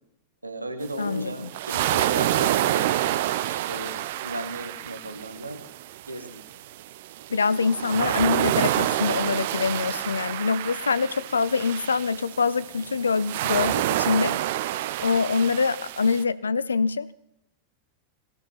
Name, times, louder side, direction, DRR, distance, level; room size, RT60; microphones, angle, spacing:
voice 1, 0.4-3.0 3.5-5.7 6.1-6.4, right 1 dB, 85° right, 8 dB, 1.7 m, -35 dB
sound 1, 0.8-16.2, right 14 dB, 55° right, 0.7 m, -28 dB
voice 2, 1.0-1.5 7.3-14.3 15.0-17.1, left 5 dB, 75° left, 18 dB, 0.6 m, -25 dB
19.0 x 13.0 x 5.8 m, 0.79 s
figure-of-eight pair, 90°, 0 cm